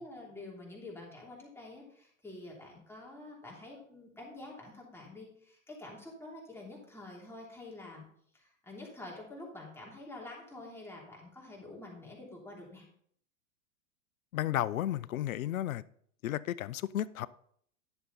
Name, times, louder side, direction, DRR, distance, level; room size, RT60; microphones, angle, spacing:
voice 1, 0.0-8.0 8.3-12.8, left 2 dB, 5° left, 3.0 m, -47 dB
voice 2, 14.3-15.8 16.2-17.3, left 12 dB, 85° left, 0.6 m, -33 dB
10.5 x 6.9 x 4.0 m
hypercardioid pair, 115°, 40 cm